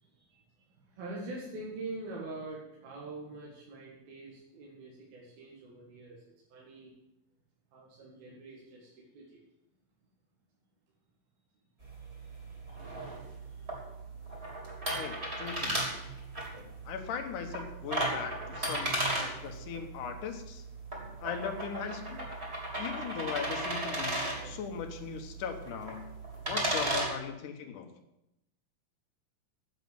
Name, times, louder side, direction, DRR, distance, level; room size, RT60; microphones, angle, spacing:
voice 1, 0.0-6.9 7.7-9.4 12.7-12.8 13.2-13.9 19.2-19.4, right 2 dB, 70° right, -4 dB, 3.9 m, -45 dB
sound 1, 11.8-27.1, right 1 dB, 20° right, 2.7 m, -36 dB
voice 2, 14.9-15.8 16.9-20.6 21.2-22.3 22.8-26.0 26.5-27.9, left 7 dB, 65° left, 5 dB, 2.5 m, -39 dB
9.4 x 7.5 x 9.3 m, 0.87 s
omnidirectional pair, 4.4 m